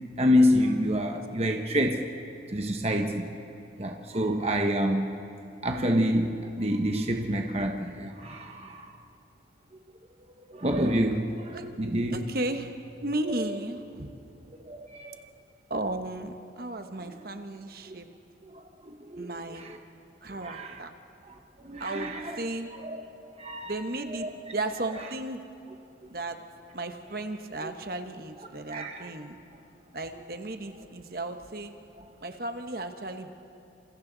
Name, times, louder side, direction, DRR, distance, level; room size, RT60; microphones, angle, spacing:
voice 1, 0.2-2.1 2.5-3.3 3.8-5.1 5.6-8.9 10.5-12.2 13.3-13.5 14.6-15.2 17.9-18.0 18.5-19.8 20.4-20.8 21.3-22.3 22.8-23.0 23.4-23.7 24.1-24.3 27.6-27.7 28.7-29.1, equal, 35° right, 3 dB, 1.0 m, -28 dB
voice 2, 12.1-12.7 13.0-14.1 15.7-18.1 19.2-19.7 20.2-20.9 21.8-22.7 23.6-25.4 26.1-26.4 26.7-29.4 29.9-31.7 32.2-33.3, right 2 dB, 50° right, 6 dB, 1.2 m, -35 dB
28.5 x 27.5 x 4.0 m, 2.7 s
head